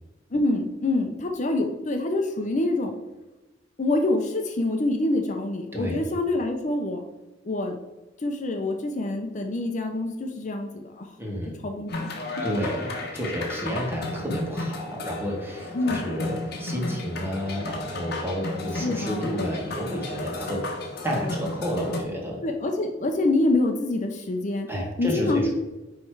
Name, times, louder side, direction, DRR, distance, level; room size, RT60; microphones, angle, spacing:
voice 1, 0.3-2.9 3.8-7.0 7.4-7.8 8.2-11.1 11.6-12.1 15.7-16.0 18.8-19.3 22.4-24.7 25.0-25.5, left 2 dB, 40° left, 3 dB, 0.6 m, -26 dB
voice 2, 5.7-6.1 11.2-11.6 12.4-20.6 21.0-22.4 24.7-25.5, equal, 10° right, -1 dB, 1.6 m, -30 dB
sound 1, 11.9-22.0, left 2 dB, 55° left, 1.2 m, -33 dB
9.4 x 3.2 x 4.6 m, 1.1 s
head